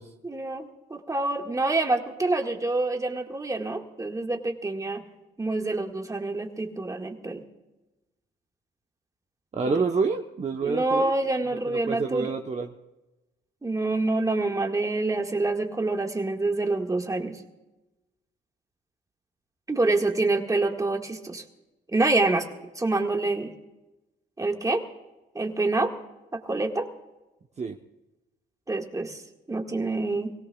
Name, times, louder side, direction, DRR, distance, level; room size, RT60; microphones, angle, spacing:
voice 1, 0.2-5.0 5.4-7.4 9.7-9.9 10.6-12.3 13.6-17.4 19.7-21.4 21.9-23.5 24.4-24.8 25.4-25.9 26.3-26.9 28.7-29.2 29.5-30.3, right 2 dB, 15° right, 3 dB, 1.8 m, -27 dB
voice 2, 9.5-11.1 11.7-12.7 27.6-27.8, right 4 dB, 35° right, 3 dB, 0.9 m, -28 dB
24.0 x 17.0 x 2.3 m, 1.0 s
cardioid pair, 90°, 20 cm